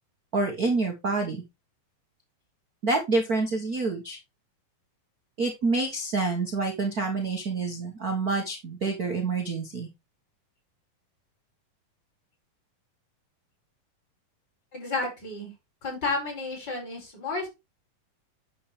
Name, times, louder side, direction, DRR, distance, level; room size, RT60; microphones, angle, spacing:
voice 1, 0.3-1.4 2.8-4.2 5.4-9.9, right 3 dB, 75° right, 2 dB, 0.8 m, -27 dB
voice 2, 14.7-15.5 15.8-17.5, left 3 dB, 30° left, -2 dB, 5.8 m, -31 dB
9.4 x 7.1 x 3.3 m, 0.23 s
omnidirectional pair, 4.0 m